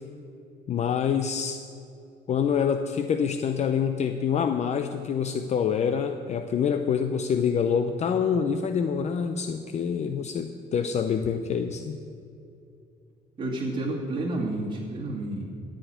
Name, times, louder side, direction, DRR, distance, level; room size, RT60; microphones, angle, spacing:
voice 1, 0.7-1.6 2.3-12.0, left 7 dB, 40° left, 7 dB, 0.6 m, -26 dB
voice 2, 13.4-15.4, right 2 dB, 30° right, -5 dB, 2.4 m, -30 dB
13.5 x 5.2 x 9.0 m, 2.6 s
cardioid pair, 110°, 17 cm